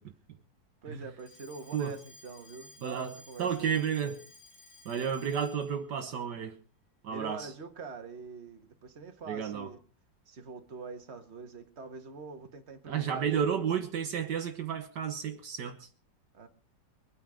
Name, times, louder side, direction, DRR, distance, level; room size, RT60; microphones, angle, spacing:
voice 1, 0.8-3.8 7.1-9.8 10.3-13.7 16.3-16.5, right 4 dB, 35° right, 1.8 m, -45 dB
Alarm, 1.2-5.8, left 2 dB, 35° left, 2.2 m, -55 dB
voice 2, 2.8-4.2 4.8-6.6 7.0-7.5 9.3-9.7 12.9-15.9, right 7 dB, 70° right, 1.6 m, -32 dB
23.0 x 9.3 x 5.1 m
omnidirectional pair, 2.0 m